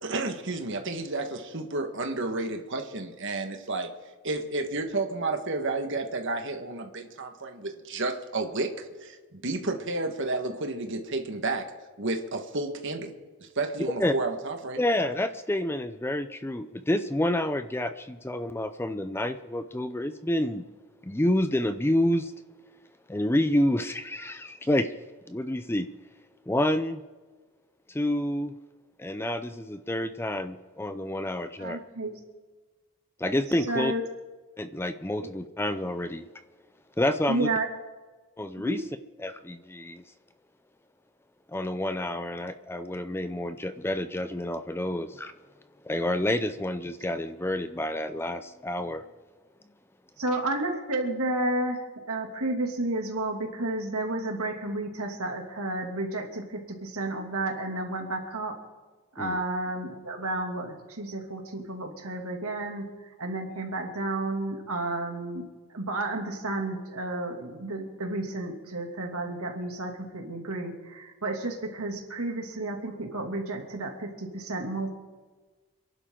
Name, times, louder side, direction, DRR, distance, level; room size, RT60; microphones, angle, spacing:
voice 1, 0.0-3.9 4.2-11.7 12.0-13.1 13.4-14.8, right 2 dB, 55° right, 5 dB, 1.5 m, -31 dB
voice 2, 14.8-20.6 21.0-22.3 23.1-24.9 25.3-25.9 26.5-27.0 27.9-28.5 29.0-31.8 33.2-33.9 34.6-36.3 37.0-37.5 38.4-38.8 39.2-40.0 41.5-45.3 45.8-49.0 59.2-59.4, left 1 dB, 10° left, 10 dB, 0.5 m, -28 dB
voice 3, 31.6-32.1 33.7-34.0 37.3-37.7 38.6-38.8 50.2-58.5 59.1-62.8 63.2-65.4 65.7-74.9, right 2 dB, 75° right, 2 dB, 2.6 m, -31 dB
27.0 x 11.5 x 3.8 m, 1.3 s
head